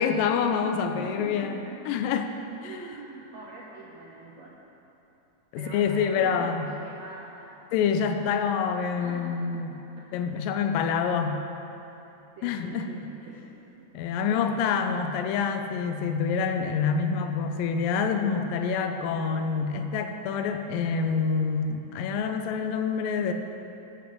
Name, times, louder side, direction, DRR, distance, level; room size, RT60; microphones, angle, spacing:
voice 1, 0.0-1.6 1.9-2.3 2.6-2.7 5.5-6.7 7.7-9.7 10.1-11.4 12.4-12.9 13.9-23.3, left 6 dB, 85° left, 7 dB, 2.3 m, -27 dB
voice 2, 0.9-1.8 2.6-4.6 5.6-7.6 9.0-9.6 10.0-10.5 12.4-13.5 13.8-13.9 14.3-15.0, right 3 dB, 75° right, -4 dB, 1.6 m, -43 dB
11.5 x 5.9 x 5.0 m, 3.0 s
omnidirectional pair, 3.9 m